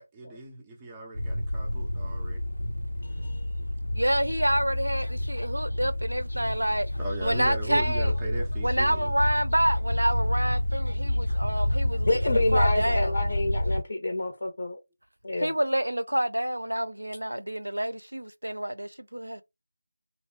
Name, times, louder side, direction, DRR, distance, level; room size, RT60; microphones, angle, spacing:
voice 1, 0.0-2.5 7.0-9.1, right 2 dB, 10° right, 0.4 m, -37 dB
sound 1, 1.1-13.8, left 1 dB, 85° left, 0.8 m, -29 dB
voice 2, 3.9-6.9 7.2-8.1 8.6-13.1 15.4-19.4, right 1 dB, 80° right, 0.4 m, -28 dB
voice 3, 12.0-14.8 15.2-15.5, left 2 dB, 45° left, 0.6 m, -27 dB
2.9 x 2.1 x 2.8 m
figure-of-eight pair, 165°, 0 cm